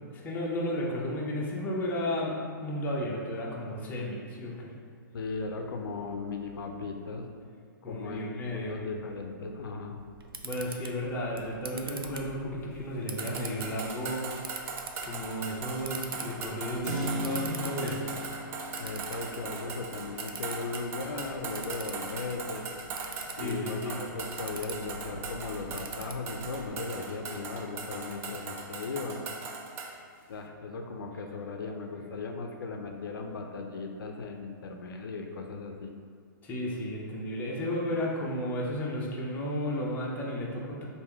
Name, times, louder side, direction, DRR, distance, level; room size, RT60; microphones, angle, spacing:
voice 1, 0.1-4.7 7.8-8.8 10.4-14.2 15.0-18.0 23.3-24.0 36.4-40.9, left 1 dB, 15° left, -4 dB, 0.7 m, -33 dB
voice 2, 5.1-7.3 7.8-10.0 18.8-22.7 23.4-29.2 30.3-35.9, left 4 dB, 75° left, 3 dB, 0.4 m, -37 dB
Camera, 10.0-26.7, right 4 dB, 90° right, 0.4 m, -45 dB
sound 1, 13.2-30.0, right 4 dB, 20° right, 0.3 m, -40 dB
Keyboard (musical), 16.8-25.4, left 1 dB, 35° right, 1.2 m, -41 dB
3.4 x 2.6 x 4.5 m, 2.1 s
hypercardioid pair, 135°, 12 cm